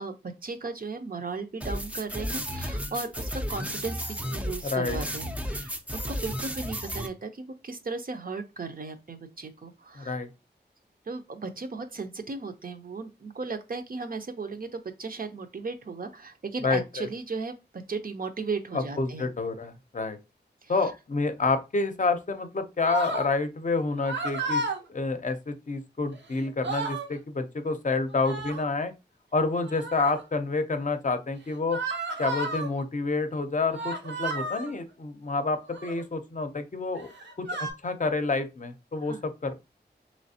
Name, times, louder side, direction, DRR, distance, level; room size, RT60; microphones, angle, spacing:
voice 1, 0.0-10.2 11.1-19.3 20.6-20.9 39.0-39.2, right 4 dB, 55° right, 0.5 m, -36 dB
sound 1, 1.6-7.1, equal, 5° right, 0.4 m, -33 dB
voice 2, 4.6-5.0 10.0-10.3 16.6-17.1 18.7-20.2 20.7-24.6 24.9-28.9 29.3-31.8 32.2-37.1 37.4-37.5 37.8-39.5, left 3 dB, 45° left, 0.6 m, -28 dB
sound 2, 22.8-23.3 24.0-24.8 26.1-26.2 26.5-27.1 28.1-28.7 29.6-30.2 31.7-32.7 33.7-34.7 35.6-36.0 37.0-37.7, right 2 dB, 85° right, 0.8 m, -32 dB
3.3 x 3.1 x 2.7 m
wide cardioid pair, 80°, 18 cm